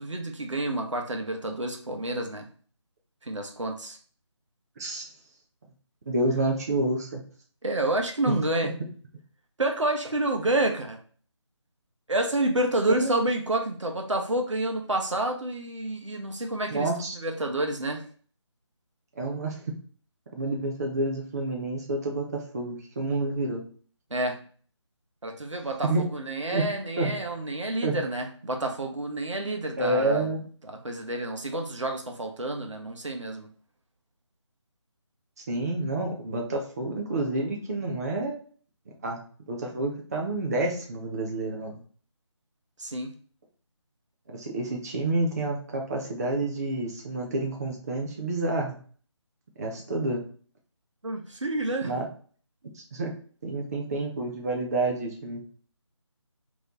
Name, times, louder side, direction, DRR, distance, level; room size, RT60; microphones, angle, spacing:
voice 1, 0.0-2.5 3.2-4.0 7.6-8.7 9.6-11.0 12.1-18.0 24.1-24.4 25.2-30.3 30.6-33.5 42.8-43.1 51.0-51.9, right 1 dB, 75° right, 3 dB, 1.0 m, -29 dB
voice 2, 6.1-7.2 8.3-8.4 12.9-13.1 16.7-17.2 19.2-19.7 20.3-23.6 25.8-26.0 26.5-26.6 27.0-27.1 27.8-28.0 29.8-30.4 35.5-38.4 39.0-39.2 39.5-41.8 44.3-48.8 49.6-50.2 51.8-52.1 52.7-53.1 53.4-55.4, right 2 dB, 30° right, 0 dB, 0.7 m, -29 dB
3.2 x 3.0 x 3.8 m, 0.44 s
figure-of-eight pair, 160°, 16 cm